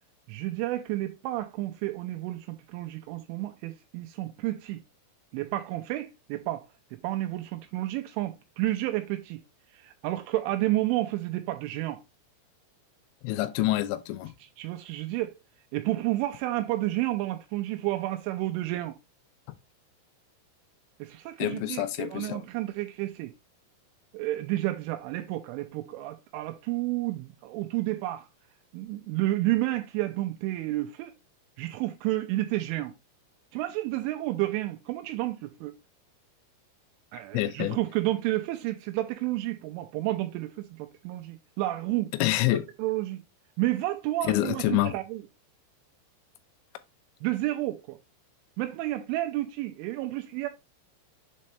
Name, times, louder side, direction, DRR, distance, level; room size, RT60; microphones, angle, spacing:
voice 1, 0.3-4.8 5.3-9.4 9.7-12.0 14.4-15.3 15.7-19.0 21.0-23.3 24.1-28.3 28.7-31.1 31.6-32.9 33.5-35.7 37.1-42.1 42.8-43.2 43.6-45.2 47.2-48.0 48.6-50.5, right 16 dB, 85° right, 3.1 m, -31 dB
voice 2, 13.2-14.3 21.4-22.4 37.3-37.8 42.1-42.7 44.2-44.9, left 15 dB, 85° left, 3.3 m, -27 dB
7.6 x 4.2 x 3.2 m
omnidirectional pair, 5.7 m